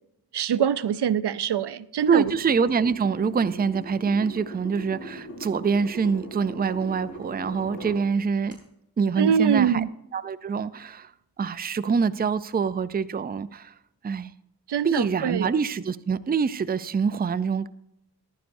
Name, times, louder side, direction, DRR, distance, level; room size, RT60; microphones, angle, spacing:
voice 1, 0.3-2.3 9.2-9.9 14.7-15.5, right 8 dB, 90° right, 0.5 m, -24 dB
puodel sukas letai oo, 2.1-8.0 8.5-8.6, equal, 40° left, 4.6 m, -40 dB
voice 2, 2.1-8.6 9.0-9.8 10.1-11.1 11.4-13.7 14.0-14.3 14.8-17.7, right 5 dB, 25° right, 0.4 m, -25 dB
14.0 x 11.5 x 2.6 m
wide cardioid pair, 80°, 39 cm